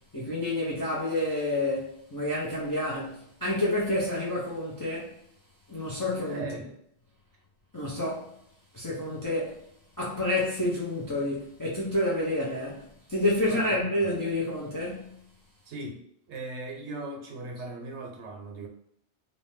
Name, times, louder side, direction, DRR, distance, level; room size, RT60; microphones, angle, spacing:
voice 1, 0.1-5.1 5.7-6.5 7.7-8.3 8.7-9.6 10.0-15.2, left 1 dB, 35° left, 0.3 m, -29 dB
voice 2, 6.2-6.7 13.5-14.1 15.7-16.0 16.3-18.7, right 2 dB, 70° right, 0.9 m, -38 dB
2.6 x 2.1 x 3.1 m
omnidirectional pair, 1.2 m